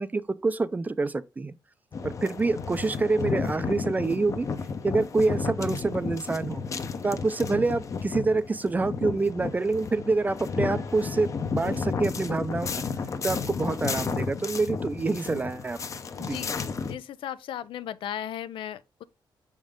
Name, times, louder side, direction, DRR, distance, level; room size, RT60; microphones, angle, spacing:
voice 1, 0.0-1.5 2.0-4.5 4.8-6.6 7.0-12.7 13.2-15.8 16.2-16.4, right 3 dB, 20° right, 0.4 m, -27 dB
sound 1, 1.9-16.9, left 5 dB, 40° left, 0.7 m, -32 dB
voice 2, 16.1-19.0, left 10 dB, 85° left, 0.6 m, -36 dB
6.4 x 5.2 x 3.7 m
wide cardioid pair, 140°, 8 cm